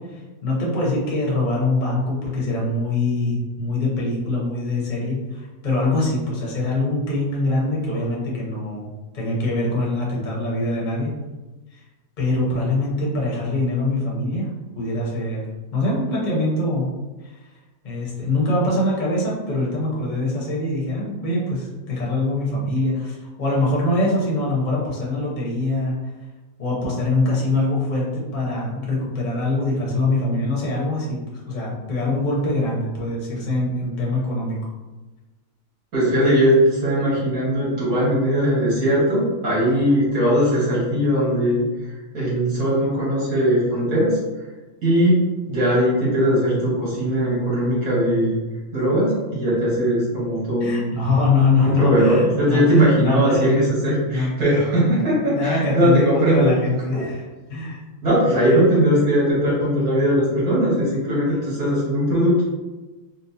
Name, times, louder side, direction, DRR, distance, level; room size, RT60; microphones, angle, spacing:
voice 1, 0.1-8.9 9.1-11.2 11.7-11.8 12.2-15.5 15.7-16.9 17.2-17.4 17.8-26.0 26.6-34.6 50.6-53.5 54.0-54.3 54.9-57.2 57.5-57.8 58.4-58.6, left 2 dB, 40° left, -5 dB, 0.9 m, -23 dB
voice 2, 35.9-44.2 44.8-48.4 48.7-51.0 51.6-56.5 56.9-57.1 58.0-62.4, equal, 80° right, -8 dB, 1.8 m, -19 dB
4.1 x 2.1 x 2.7 m, 1.2 s
omnidirectional pair, 1.5 m